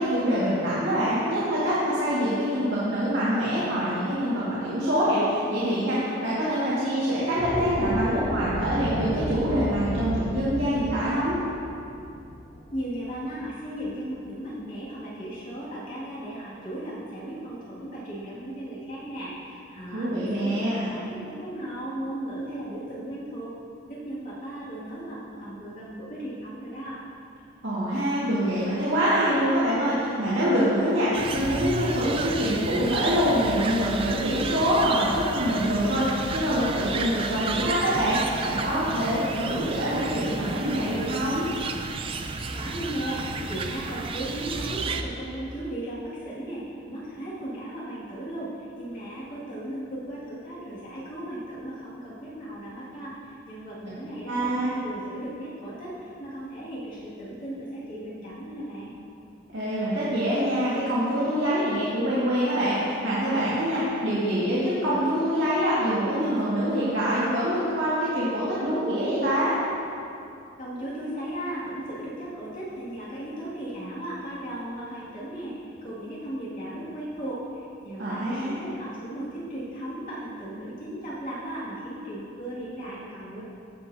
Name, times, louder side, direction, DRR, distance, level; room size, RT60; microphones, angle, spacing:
voice 1, 0.0-11.4 19.9-20.9 27.6-36.0 36.3-41.5 54.3-54.7 59.5-69.5 78.0-78.5, equal, 60° right, -10 dB, 2.0 m, -25 dB
sound 1, 7.2-13.6, equal, 20° left, 1.0 m, -32 dB
voice 2, 12.7-23.5 23.9-27.0 42.5-58.9 70.6-83.4, right 1 dB, 45° left, -9 dB, 2.3 m, -36 dB
sound 2, 31.1-45.0, right 4 dB, 30° right, 0.4 m, -32 dB
15.5 x 7.3 x 2.8 m, 2.6 s
head